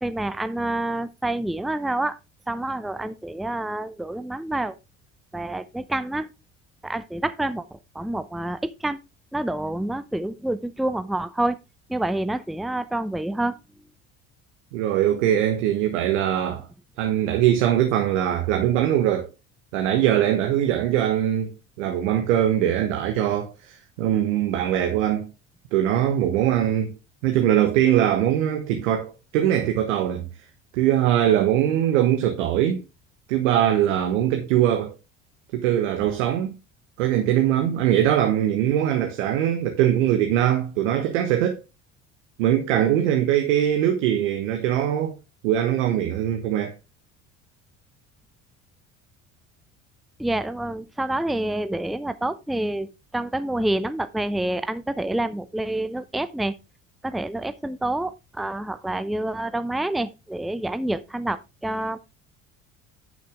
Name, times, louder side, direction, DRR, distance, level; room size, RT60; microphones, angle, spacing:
voice 1, 0.0-2.2 2.5-4.8 5.3-6.3 6.8-7.6 7.9-9.0 9.3-11.6 11.9-13.6 50.2-52.9 53.1-56.5 57.0-62.0, right 1 dB, ahead, 0.7 m, -27 dB
voice 2, 14.7-16.6 17.0-19.3 19.7-25.3 25.7-26.9 27.2-30.3 30.7-32.8 33.3-34.9 35.5-36.6 37.0-41.6 42.4-45.2 45.4-46.7, right 11 dB, 80° right, 1.4 m, -22 dB
11.0 x 6.6 x 3.5 m
hypercardioid pair, 65°, 37 cm